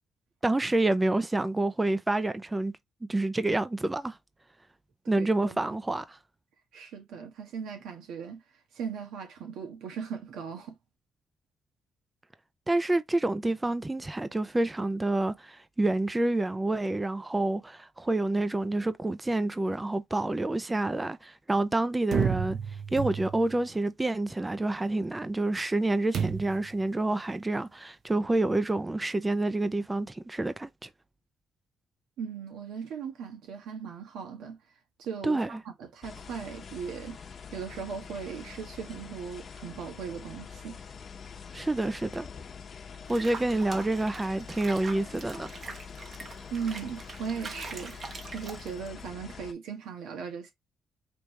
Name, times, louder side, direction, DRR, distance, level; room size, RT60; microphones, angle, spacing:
voice 1, 0.4-2.7 3.1-4.2 5.1-6.2 12.7-22.6 22.9-30.9 35.2-35.6 41.5-42.3 43.1-45.5, right 2 dB, 15° right, 0.5 m, -28 dB
voice 2, 5.0-5.6 6.7-8.4 8.7-10.7 32.2-34.6 35.0-37.2 37.5-40.8 46.5-47.9 48.3-50.5, right 6 dB, 85° right, 1.6 m, -38 dB
sound 1, 22.1-23.6 26.1-26.7, right 7 dB, 65° right, 1.0 m, -30 dB
sound 2, 36.0-49.5, left 6 dB, 45° left, 0.9 m, -45 dB
Water / Bathtub (filling or washing), 43.1-49.0, right 4 dB, 45° right, 1.1 m, -43 dB
5.2 x 3.1 x 3.2 m
cardioid pair, 90°, 0 cm